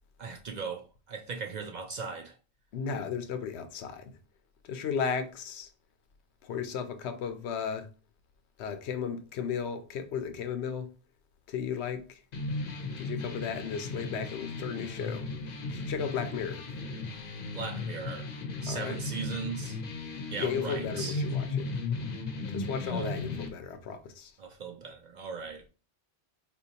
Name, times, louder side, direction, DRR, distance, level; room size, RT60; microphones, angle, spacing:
voice 1, 0.2-2.4 17.5-18.3 18.6-19.8 20.3-21.2 22.8-23.2 24.4-25.6, right 5 dB, 55° right, 0.5 m, -38 dB
voice 2, 2.7-4.1 4.6-5.7 6.4-7.9 8.6-10.9 11.5-12.2 13.0-15.3 15.7-16.7 18.7-19.0 20.4-21.5 22.5-24.3, left 6 dB, 90° left, 0.9 m, -34 dB
sound 1, 12.3-23.5, left 3 dB, 60° left, 0.8 m, -36 dB
4.2 x 2.6 x 2.8 m
omnidirectional pair, 1.1 m